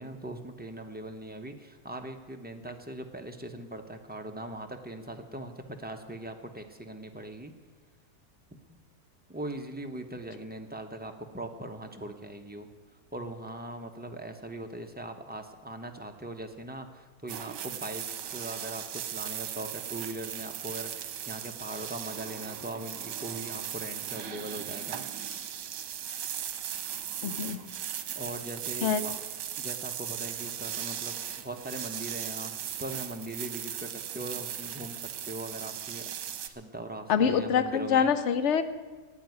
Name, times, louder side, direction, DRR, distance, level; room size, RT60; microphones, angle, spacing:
voice 1, 0.0-7.5 9.3-12.7 13.1-25.3 28.1-29.1 29.6-31.2 31.4-38.1, right 1 dB, 10° right, 4 dB, 0.4 m, -40 dB
sound 1, 17.3-36.5, right 9 dB, 80° right, 1.5 m, -37 dB
voice 2, 27.2-27.6 28.8-29.1 37.1-38.6, left 7 dB, 50° left, 11 dB, 1.0 m, -25 dB
12.5 x 8.8 x 9.3 m, 1.4 s
omnidirectional pair, 1.9 m